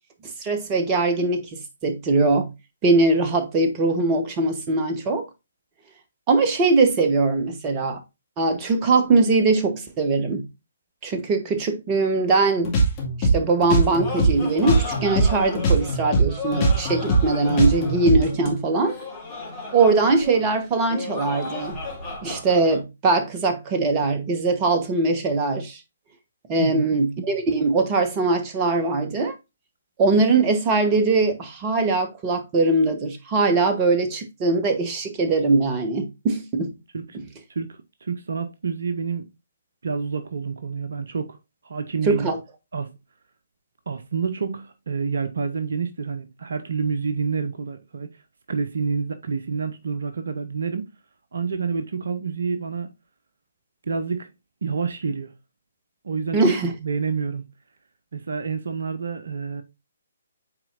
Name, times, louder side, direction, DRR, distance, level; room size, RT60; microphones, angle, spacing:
voice 1, 0.4-2.5 2.8-5.2 6.3-8.0 8.4-10.5 11.0-12.7 13.2-18.9 19.7-21.8 22.2-25.8 26.5-29.3 30.0-36.7 42.0-42.4 56.3-56.7, right 3 dB, 20° right, 1.1 m, -21 dB
sound 1, 12.6-15.3 15.6-18.5, right 2 dB, 25° left, 2.2 m, -20 dB
Laughter, 13.6-22.8, left 3 dB, 5° left, 2.8 m, -35 dB
voice 2, 26.6-26.9 36.9-37.0 37.5-37.7 38.0-39.3 39.8-41.4 41.6-42.3 42.7-42.9 43.9-48.1 48.5-50.9 51.3-52.9 53.9-54.3 54.6-55.3 56.0-56.5 56.8-57.4 58.1-59.6, right 5 dB, 60° right, 0.6 m, -28 dB
8.7 x 4.2 x 2.6 m
figure-of-eight pair, 130°, 0 cm